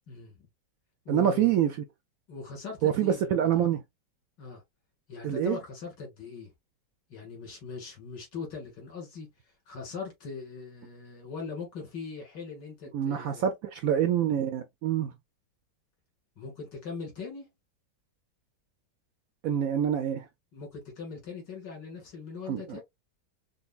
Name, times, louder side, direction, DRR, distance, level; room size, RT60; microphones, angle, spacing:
voice 1, 0.1-0.5 1.1-1.5 2.3-3.7 4.4-4.6 5.1-6.5 7.1-13.5 16.4-17.5 20.5-22.8, left 5 dB, 80° left, 2.5 m, -41 dB
voice 2, 1.1-1.7 2.8-3.8 5.2-5.6 12.9-15.1 19.4-20.3 22.5-22.8, right 9 dB, 70° right, 0.8 m, -26 dB
5.1 x 2.1 x 2.4 m
omnidirectional pair, 1.9 m